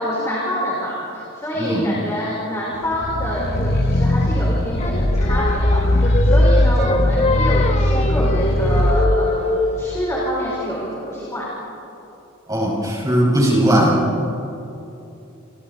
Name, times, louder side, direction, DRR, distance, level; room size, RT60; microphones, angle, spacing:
voice 1, 0.0-11.5, equal, 15° left, -6 dB, 4.8 m, -26 dB
voice 2, 1.5-1.9 12.5-14.1, right 1 dB, 15° right, -3 dB, 5.8 m, -18 dB
sound 1, 2.9-9.0, left 1 dB, 45° left, 1.1 m, -18 dB
Singing, 4.8-10.0, left 2 dB, 30° left, 1.6 m, -24 dB
28.5 x 28.5 x 4.2 m, 2.9 s
head